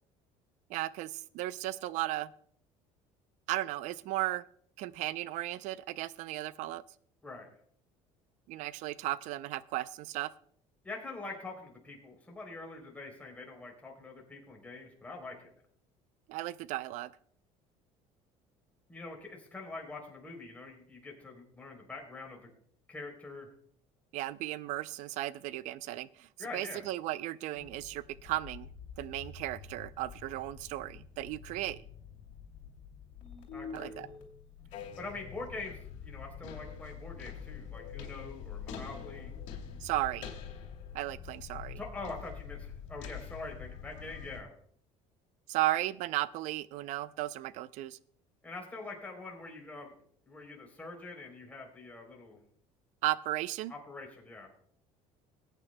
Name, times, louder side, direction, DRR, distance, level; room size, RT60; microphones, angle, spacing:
voice 1, 0.7-2.3 3.5-4.4 4.8-6.8 8.5-10.3 16.3-17.1 24.1-28.7 29.0-31.8 33.7-34.1 39.8-40.3 40.9-41.8 45.5-48.0 53.0-53.7, right 16 dB, 70° right, 17 dB, 0.5 m, -35 dB
voice 2, 10.8-15.5 18.9-22.5 22.9-23.5 26.4-26.8 33.5-33.9 35.0-39.3 41.8-44.5 48.4-49.9 50.3-52.4 53.7-54.5, left 3 dB, 10° left, 0 dB, 3.3 m, -44 dB
sound 1, 27.6-44.4, left 7 dB, 70° left, 2.7 m, -46 dB
20.5 x 9.1 x 2.2 m, 0.64 s
cardioid pair, 140°, 13 cm